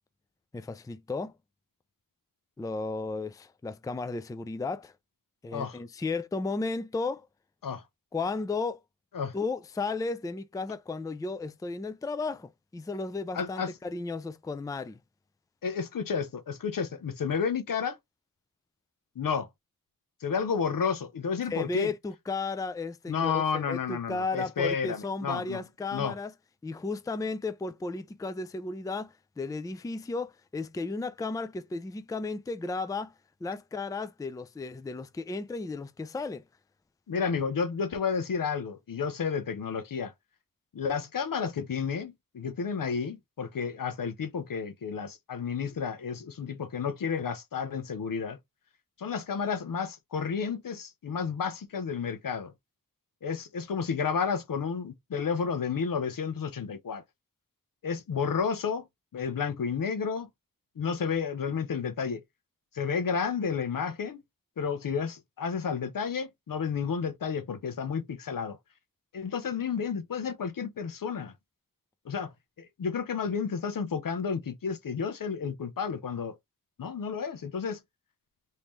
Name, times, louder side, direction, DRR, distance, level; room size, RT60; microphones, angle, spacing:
voice 1, 0.5-1.3 2.6-4.9 5.4-7.3 8.1-8.8 9.3-15.0 21.5-26.3 26.6-33.1 33.4-36.4, left 3 dB, 10° left, 0.3 m, -34 dB
voice 2, 13.3-13.7 15.6-18.0 19.2-19.5 20.2-21.9 23.1-25.6 25.9-26.1 37.1-40.1 40.7-48.4 49.0-52.5 53.2-57.0 57.8-58.9 59.1-60.3 60.8-62.2 62.7-64.2 64.6-68.6 69.1-71.3 72.1-72.3 72.6-76.3 76.8-77.8, left 6 dB, 70° left, 0.6 m, -31 dB
3.4 x 2.7 x 3.0 m
wide cardioid pair, 65°, 34 cm